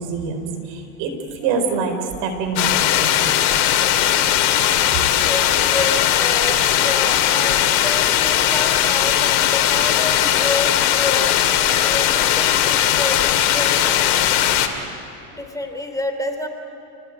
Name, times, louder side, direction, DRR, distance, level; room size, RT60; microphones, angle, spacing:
voice 1, 0.0-3.5, right 5 dB, 70° right, 6 dB, 4.6 m, -26 dB
sound 1, 2.6-14.7, left 11 dB, 80° left, 2.4 m, -18 dB
voice 2, 5.3-14.0 14.8-16.5, left 2 dB, 10° left, 4 dB, 3.4 m, -29 dB
29.5 x 19.5 x 9.3 m, 2.8 s
supercardioid pair, 105°, 43 cm